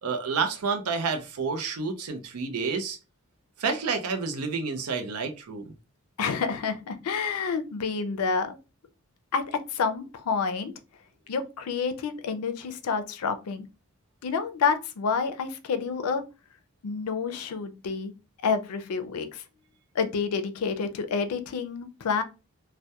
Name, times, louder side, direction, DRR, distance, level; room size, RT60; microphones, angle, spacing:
voice 1, 0.0-3.0 3.6-5.7, right 5 dB, 85° right, 0.5 m, -29 dB
voice 2, 6.2-8.6 9.3-10.7 11.3-13.6 14.2-16.2 16.8-18.1 18.4-19.4 19.9-22.2, left 5 dB, 85° left, 0.4 m, -29 dB
2.2 x 2.1 x 2.8 m
head